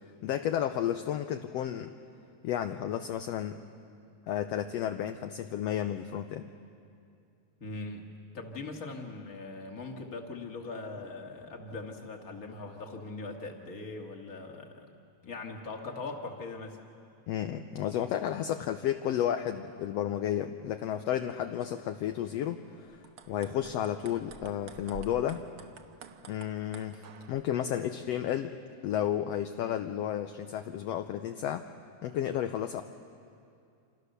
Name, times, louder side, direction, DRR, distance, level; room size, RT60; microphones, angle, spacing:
voice 1, 0.2-1.9 2.4-3.6 4.3-6.5 17.3-25.4 26.3-28.6 28.8-31.6 32.0-32.8, left 10 dB, 70° left, 7 dB, 1.7 m, -32 dB
voice 2, 7.6-8.0 8.3-14.9 15.2-16.8, left 3 dB, 30° left, 2 dB, 2.2 m, -41 dB
sound 1, 22.9-27.4, right 6 dB, 60° right, 1.6 m, -49 dB
28.0 x 27.0 x 6.8 m, 2.4 s
omnidirectional pair, 3.5 m